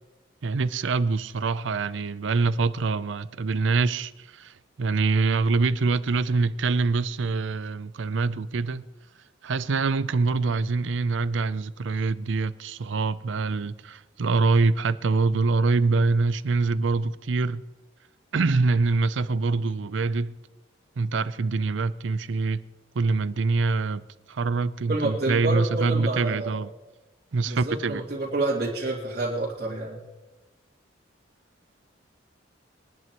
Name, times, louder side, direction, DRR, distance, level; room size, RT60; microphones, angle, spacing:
voice 1, 0.4-8.8 9.4-17.6 18.3-20.4 21.0-22.6 22.9-24.0 24.3-26.7 27.3-28.0, right 3 dB, 75° right, 0.5 m, -25 dB
voice 2, 24.9-26.6 27.5-30.0, right 2 dB, 50° right, 2.3 m, -28 dB
22.5 x 11.0 x 3.0 m
head